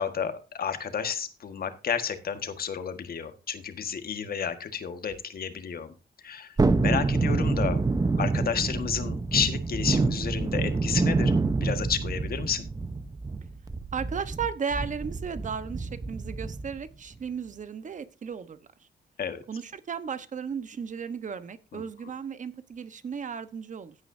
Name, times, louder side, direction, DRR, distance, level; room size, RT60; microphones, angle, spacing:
voice 1, 0.0-5.9 6.2-7.8 8.2-12.7 19.2-19.4 21.7-21.8, left 7 dB, 55° left, 1.6 m, -31 dB
Thunderstorm, 6.6-16.8 17.1-17.2, right 3 dB, 20° right, 0.9 m, -27 dB
voice 2, 13.9-18.9 19.5-24.0, right 6 dB, 45° right, 1.1 m, -35 dB
15.0 x 9.5 x 2.7 m
wide cardioid pair, 130°, 18 cm